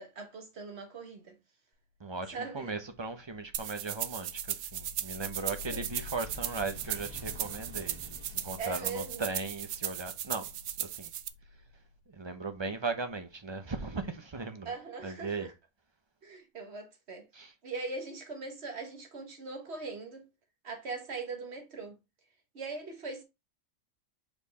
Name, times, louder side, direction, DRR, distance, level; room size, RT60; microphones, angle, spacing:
voice 1, 0.0-1.4 2.3-2.7 5.7-5.8 8.6-9.2 14.7-15.5 16.2-17.3 17.6-20.3 20.6-21.9 22.5-23.2, right 4 dB, 50° right, 1.7 m, -40 dB
voice 2, 2.0-10.5 10.8-11.1 12.1-14.7 15.0-15.5 17.3-17.5, right 3 dB, 30° right, 0.6 m, -38 dB
sound 1, 3.2-13.3, left 4 dB, 80° left, 1.7 m, -49 dB
sound 2, 3.5-11.3, right 11 dB, 85° right, 1.1 m, -37 dB
5.6 x 4.5 x 4.1 m
omnidirectional pair, 1.4 m